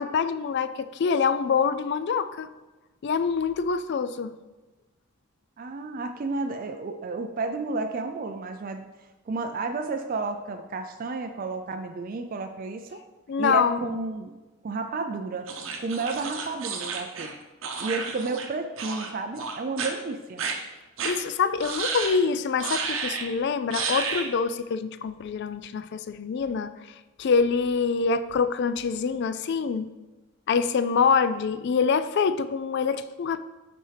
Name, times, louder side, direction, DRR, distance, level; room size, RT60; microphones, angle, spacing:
voice 1, 0.0-2.5 3.0-4.3 13.3-14.0 21.0-26.7 27.2-29.9 30.5-33.4, left 5 dB, 50° left, 12 dB, 0.3 m, -25 dB
voice 2, 5.6-8.9 9.3-13.0 13.4-14.4 14.6-17.3 17.8-20.4, right 3 dB, 40° right, 6 dB, 0.3 m, -32 dB
sound 1, 15.5-18.5 18.8-19.1 19.4-19.9 20.4-20.5 21.0-21.1 21.6-22.2 22.6-23.3 23.7-24.3, right 5 dB, 60° right, 0.8 m, -31 dB
10.0 x 4.4 x 3.3 m, 1.2 s
head